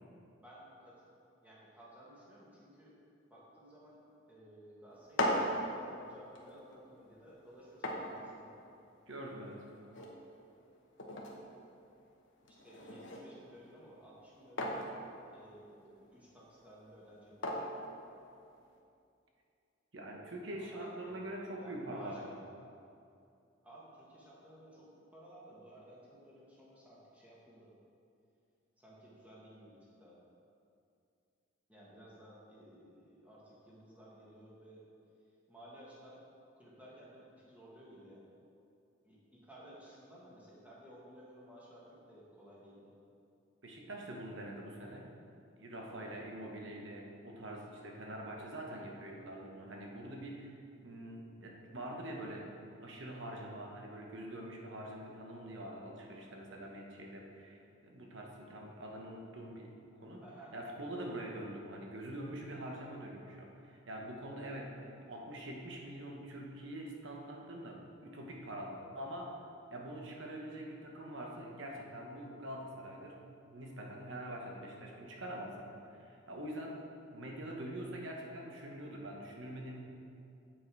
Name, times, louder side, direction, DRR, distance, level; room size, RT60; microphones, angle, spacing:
voice 1, 0.3-1.1 1.4-3.0 3.3-4.0 4.3-8.7 12.5-15.0 15.3-17.6 20.6-22.2 23.6-27.7 28.8-30.2 31.7-34.8 35.5-36.2 36.6-38.3 39.0-42.9 60.2-60.5, right 1 dB, 5° right, -7 dB, 1.7 m, -56 dB
sound 1, 4.9-18.8, left 1 dB, 65° left, 1.1 m, -41 dB
voice 2, 9.1-9.6 19.9-22.3 43.6-45.1 45.6-50.5 50.8-52.5 52.8-59.7 60.0-60.2 60.5-69.4 69.7-73.2 73.5-76.8 77.1-79.8, right 1 dB, 70° right, 0 dB, 1.2 m, -44 dB
7.7 x 7.6 x 4.7 m, 2.5 s
head